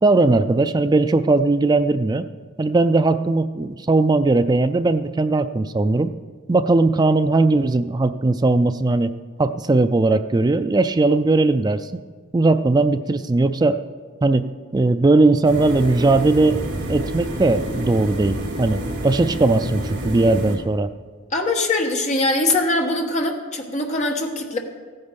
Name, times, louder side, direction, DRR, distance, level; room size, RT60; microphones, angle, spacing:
voice 1, 0.0-2.3 2.6-6.1 6.5-9.1 9.4-11.9 12.3-13.8 14.2-14.4 14.7-16.6 16.9-20.9, right 2 dB, 20° right, 10 dB, 0.3 m, -18 dB
sound 1, 15.4-20.6, right 1 dB, 50° right, 1.9 m, -28 dB
voice 2, 21.3-24.6, left 2 dB, 35° left, 2 dB, 1.3 m, -22 dB
14.5 x 9.6 x 5.2 m, 1.6 s
head